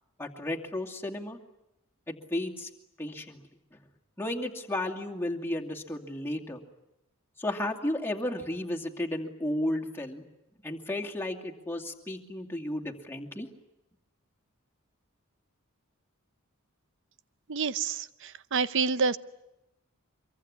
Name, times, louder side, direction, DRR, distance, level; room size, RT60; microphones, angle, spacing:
voice 1, 0.2-1.4 2.1-2.7 3.0-3.8 4.2-6.6 7.4-10.2 10.6-13.5, left 1 dB, 10° left, 0 dB, 2.5 m, -33 dB
voice 2, 17.5-19.2, right 5 dB, 60° right, 14 dB, 0.9 m, -28 dB
25.5 x 23.5 x 9.7 m, 0.88 s
head